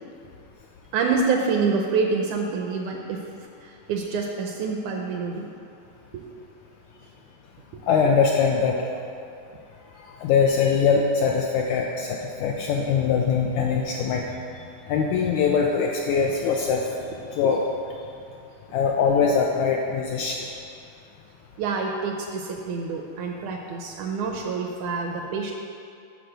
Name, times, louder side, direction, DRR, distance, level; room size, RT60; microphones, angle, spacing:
voice 1, 0.9-3.3 3.6-5.5 6.1-6.2 7.7-7.8 21.6-25.5, right 4 dB, 80° right, 2 dB, 1.8 m, -27 dB
voice 2, 7.9-8.8 10.2-14.2 14.9-16.9 17.3-17.7 18.7-20.5, left 6 dB, 80° left, 0 dB, 1.7 m, -22 dB
9.5 x 4.2 x 6.6 m, 2.5 s
omnidirectional pair, 3.8 m